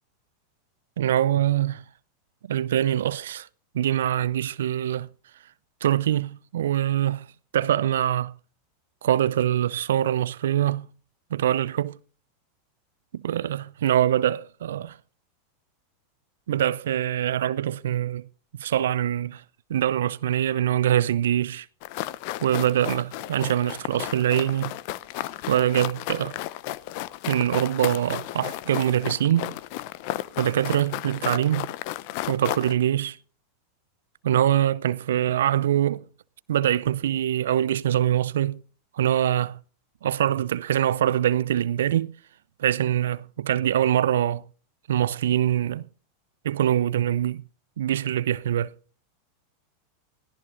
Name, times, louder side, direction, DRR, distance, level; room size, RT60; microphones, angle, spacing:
voice 1, 1.0-1.8 2.4-3.5 3.7-5.1 5.8-7.3 7.5-8.3 9.0-10.9 11.3-12.0 13.1-15.0 16.5-18.3 18.6-19.4 19.7-21.7 22.4-24.7 25.5-26.4 27.3-29.5 30.4-31.7 32.3-33.2 34.2-36.0 36.5-38.6 38.9-39.6 40.0-42.1 42.6-44.4 44.9-45.8 46.4-47.4 47.8-48.7, right 11 dB, 70° right, 0.5 m, -24 dB
sound 1, 21.8-32.8, left 16 dB, 55° left, 0.7 m, -34 dB
18.0 x 17.5 x 2.6 m
figure-of-eight pair, 90°, 0 cm